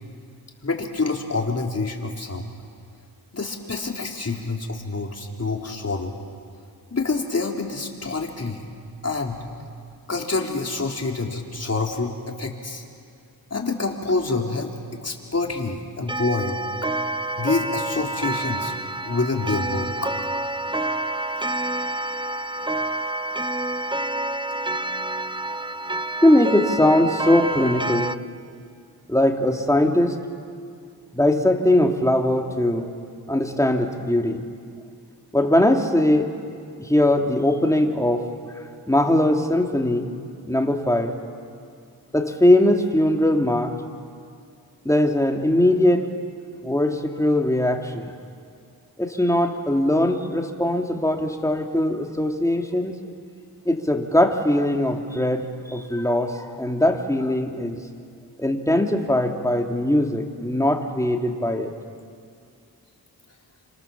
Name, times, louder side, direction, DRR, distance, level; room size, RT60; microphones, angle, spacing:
voice 1, 0.6-2.5 3.3-6.1 6.9-8.6 9.0-9.4 10.1-12.8 13.5-14.7 15.0-16.6 17.4-18.8 19.0-20.1, left 3 dB, 40° left, 0 dB, 4.2 m, -27 dB
Clock, 16.1-28.1, right 2 dB, 10° right, 0.8 m, -28 dB
voice 2, 26.2-28.1 29.1-30.1 31.1-32.9 33.3-34.4 35.3-36.3 36.8-38.2 38.9-40.1 40.5-41.1 42.1-43.8 44.8-46.0 46.6-48.1 49.0-52.9 53.6-57.8 58.4-61.7, left 1 dB, 10° left, 2 dB, 3.0 m, -20 dB
28.5 x 26.5 x 7.4 m, 2.3 s
cardioid pair, 55°, 39 cm